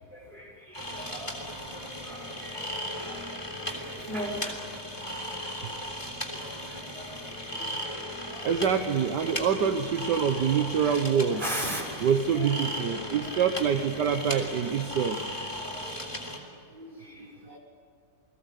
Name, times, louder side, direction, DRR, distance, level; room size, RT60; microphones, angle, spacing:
voice 1, 0.1-1.4 1.7-3.2 3.6-4.6 6.3-7.2 7.5-7.7 8.3-8.5 8.9-9.7 10.3-12.6 13.1-13.2 14.3-14.4 15.6-15.9 16.7-17.6, right 1 dB, 25° right, 0 dB, 6.2 m, -40 dB
sound 1, 0.7-16.4, equal, 15° left, 3.5 m, -37 dB
voice 2, 8.4-11.4 12.0-15.2, right 7 dB, 70° right, 6 dB, 1.7 m, -25 dB
29.5 x 21.5 x 8.4 m, 2.3 s
omnidirectional pair, 1.9 m